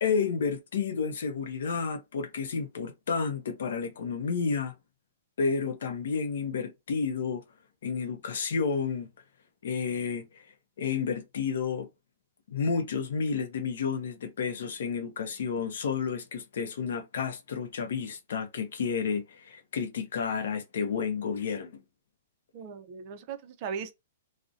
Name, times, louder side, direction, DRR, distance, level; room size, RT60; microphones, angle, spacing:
voice 1, 0.0-4.7 5.4-7.4 7.8-9.1 9.6-10.3 10.8-11.9 12.5-21.8, left 5 dB, 70° left, 0.5 m, -31 dB
voice 2, 22.5-23.9, right 6 dB, 35° right, 0.4 m, -38 dB
2.5 x 2.0 x 2.4 m
hypercardioid pair, 165°, 0 cm